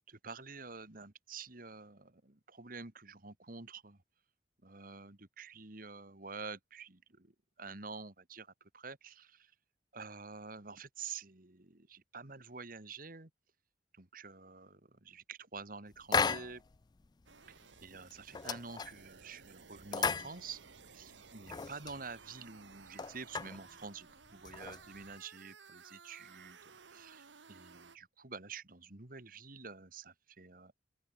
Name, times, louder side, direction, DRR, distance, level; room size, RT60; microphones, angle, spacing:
voice 1, 0.1-4.0 4.6-9.5 9.9-13.3 13.9-16.6 17.5-17.6 17.8-20.6 20.9-26.6 26.9-30.8, right 4 dB, 50° right, 2.1 m, -48 dB
sound 1, 16.1-16.8 17.0-17.1 17.6-17.8 18.1-19.2 19.8-20.9 21.2-22.0 22.5-22.6 22.8-23.6 24.3-25.1, left 5 dB, 25° left, 0.3 m, -35 dB
sound 2, 17.3-28.0, right 5 dB, 90° right, 1.4 m, -57 dB
open air
head